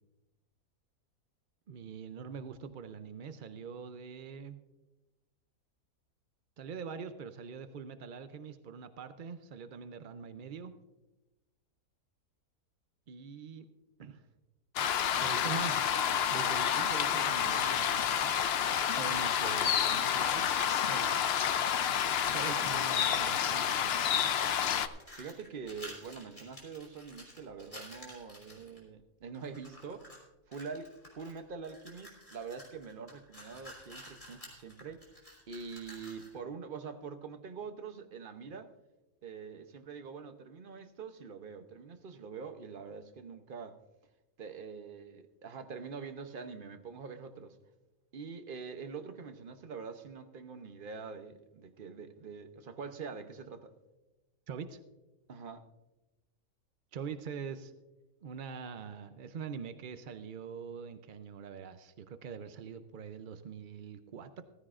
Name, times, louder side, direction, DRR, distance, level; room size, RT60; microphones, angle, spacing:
voice 1, 1.7-4.6 6.6-10.7 13.1-13.7 14.0-14.3 15.2-15.7 16.3-18.1 18.9-20.5 20.8-21.3 22.3-24.4 54.5-54.8 56.9-57.7 58.2-64.4, right 6 dB, 65° right, 0.4 m, -43 dB
sound 1, 14.8-24.9, left 8 dB, 60° left, 0.6 m, -29 dB
sound 2, 19.4-20.5 20.7-23.3 23.6-28.8 29.3-30.2 30.5-36.4, equal, 20° left, 3.4 m, -52 dB
voice 2, 22.6-23.0 25.2-30.1 30.5-35.0 35.5-38.7 39.2-43.8 44.4-47.6 48.1-53.7 55.3-55.7, right 5 dB, 45° right, 0.8 m, -44 dB
15.0 x 14.5 x 2.5 m
omnidirectional pair, 1.6 m